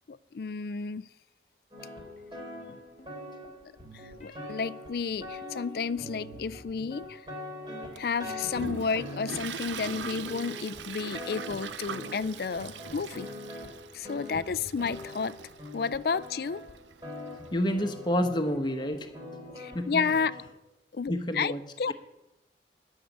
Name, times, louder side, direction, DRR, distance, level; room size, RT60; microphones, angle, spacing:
voice 1, 0.1-1.1 3.9-7.2 7.9-13.3 13.9-16.6 19.6-20.3 20.9-21.9, left 5 dB, 55° left, 0.4 m, -32 dB
sound 1, 1.7-20.5, left 1 dB, 25° right, 3.3 m, -43 dB
sound 2, 2.4-3.2 4.2-4.5 5.1-6.7 6.9-7.5, equal, 40° left, 1.5 m, -51 dB
Toilet flush, 8.0-18.2, right 6 dB, 90° right, 0.6 m, -42 dB
voice 2, 17.5-19.1 19.7-20.0 21.1-21.6, equal, 25° left, 1.1 m, -28 dB
12.0 x 6.5 x 9.3 m
head